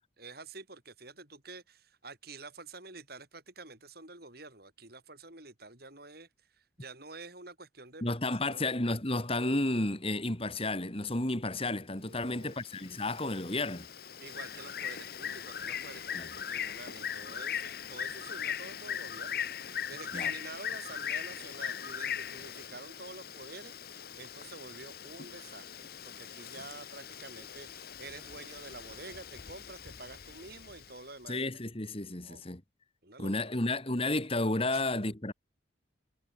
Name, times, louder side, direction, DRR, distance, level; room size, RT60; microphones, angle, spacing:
voice 1, 0.2-8.2 8.5-8.7 12.0-12.6 14.2-19.5 19.9-31.5 32.2-32.4 33.0-33.6 34.7-34.8, right 3 dB, 50° right, 6.9 m, -49 dB
voice 2, 8.0-13.9 16.1-16.3 20.1-20.3 31.3-32.6 33.2-35.3, left 2 dB, 30° left, 2.2 m, -32 dB
Bird, 12.3-31.0, left 8 dB, 50° left, 1.2 m, -40 dB
head